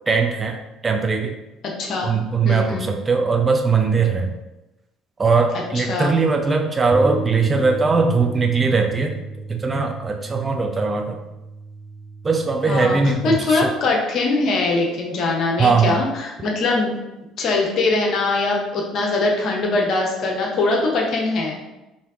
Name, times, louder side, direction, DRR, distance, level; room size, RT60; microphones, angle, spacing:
voice 1, 0.1-0.6 0.8-1.4 2.0-4.3 5.2-9.1 9.5-11.2 12.2-13.7 15.6-16.0, right 4 dB, 25° right, 3 dB, 0.4 m, -20 dB
voice 2, 1.8-2.1 2.4-2.9 5.5-6.1 12.7-17.0 17.4-21.6, left 3 dB, 50° left, 0 dB, 0.8 m, -22 dB
Bass guitar, 6.9-13.2, right 2 dB, 10° left, 0.8 m, -33 dB
3.3 x 2.7 x 3.5 m, 0.99 s
figure-of-eight pair, 55°, 0 cm